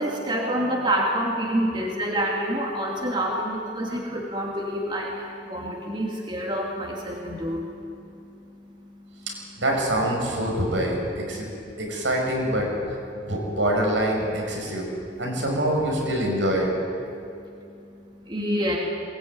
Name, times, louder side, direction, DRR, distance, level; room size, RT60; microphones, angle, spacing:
voice 1, 0.0-9.3 11.3-11.8 13.1-13.3 17.1-18.8, equal, 25° right, -2 dB, 2.7 m, -28 dB
voice 2, 9.3-11.5 11.8-12.7 13.1-14.9 15.2-16.7, right 1 dB, 80° right, 0 dB, 6.8 m, -25 dB
21.5 x 20.5 x 9.7 m, 2.6 s
head